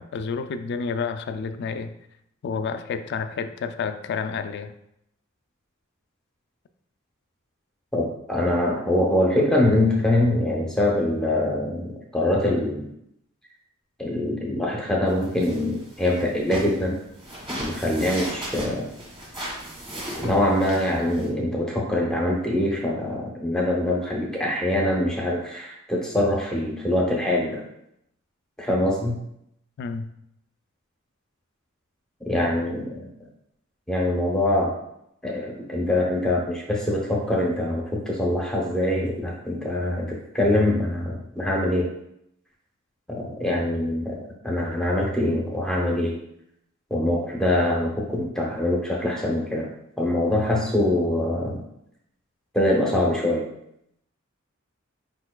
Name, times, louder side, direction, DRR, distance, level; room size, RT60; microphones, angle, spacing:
voice 1, 0.0-1.9 2.4-4.7 29.8-30.1, left 5 dB, 55° left, 10 dB, 0.3 m, -30 dB
voice 2, 7.9-12.9 14.0-17.0 17.5-18.9 20.2-27.6 28.6-29.2 32.3-33.1 33.9-34.7 35.2-41.8 43.1-46.1 46.9-49.7 50.0-51.6 52.5-53.4, left 1 dB, 5° left, -2 dB, 0.7 m, -24 dB
sound 1, 15.1-21.3, right 1 dB, 25° right, 1.5 m, -37 dB
4.7 x 4.4 x 2.2 m, 0.78 s
head